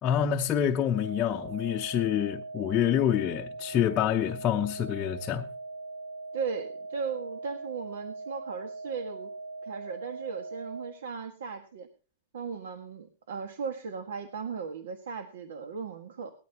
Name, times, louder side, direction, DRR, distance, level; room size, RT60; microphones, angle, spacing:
voice 1, 0.0-5.5, left 9 dB, 20° left, 0.7 m, -27 dB
sound 1, 0.9-10.9, right 3 dB, 60° right, 4.0 m, -41 dB
voice 2, 6.3-9.3 9.6-11.9 12.3-16.3, right 5 dB, 80° right, 1.7 m, -37 dB
19.0 x 13.0 x 3.0 m
supercardioid pair, 165°, 0 cm